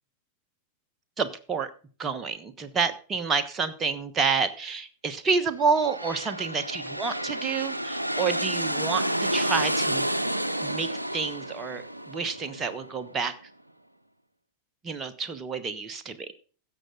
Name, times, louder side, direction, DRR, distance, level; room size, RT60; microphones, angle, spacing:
voice 1, 1.2-1.7 2.0-10.1 10.6-13.3 14.8-16.3, right 5 dB, 20° right, 9 dB, 1.1 m, -29 dB
sound 1, 5.6-13.3, right 1 dB, 85° right, 0.5 m, -30 dB
15.5 x 6.7 x 3.8 m, 0.39 s
figure-of-eight pair, 90°, 0 cm